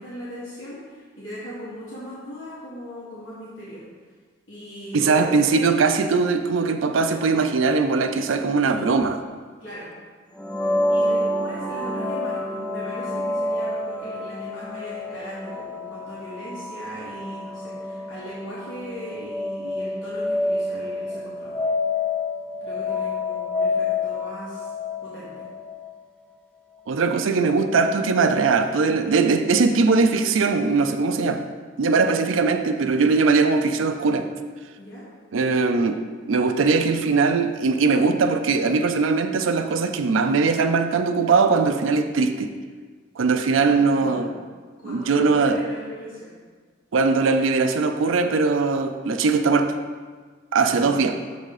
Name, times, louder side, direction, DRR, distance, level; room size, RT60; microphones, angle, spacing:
voice 1, 0.0-3.8 4.5-5.8 9.6-9.9 10.6-21.6 22.6-24.7 25.0-25.5 34.8-35.1 43.6-44.4 44.8-46.3 50.6-51.4, equal, 75° left, -10 dB, 1.9 m, -38 dB
voice 2, 4.9-9.2 26.9-31.4 31.8-34.3 35.3-36.0 36.3-42.5 43.2-44.3 44.8-45.6 46.9-49.7 50.5-51.2, right 4 dB, 90° right, 8 dB, 0.5 m, -20 dB
sound 1, 10.4-26.0, left 2 dB, 5° left, 0.4 m, -28 dB
6.5 x 3.9 x 4.9 m, 1.5 s
head